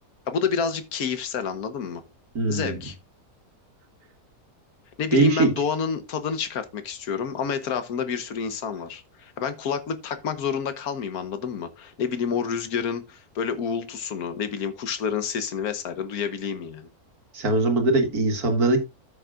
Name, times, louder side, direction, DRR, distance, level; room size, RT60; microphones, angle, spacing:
voice 1, 0.3-2.0 2.5-2.9 5.0-16.9, left 6 dB, 80° left, 1.5 m, -29 dB
voice 2, 2.4-2.8 5.1-5.5 17.3-18.8, right 2 dB, 80° right, 2.2 m, -21 dB
13.5 x 6.4 x 2.5 m
omnidirectional pair, 1.6 m